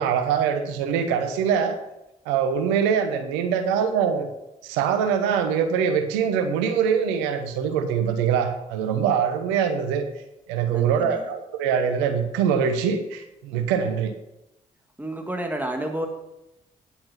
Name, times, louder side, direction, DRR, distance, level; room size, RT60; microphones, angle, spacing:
voice 1, 0.0-1.8 2.3-4.3 4.6-10.0 10.5-14.1, right 7 dB, 80° right, 8 dB, 1.0 m, -23 dB
voice 2, 10.7-11.2 15.0-16.1, right 1 dB, 10° right, 3 dB, 1.8 m, -30 dB
10.0 x 8.8 x 5.8 m, 0.90 s
hypercardioid pair, 40°, 18 cm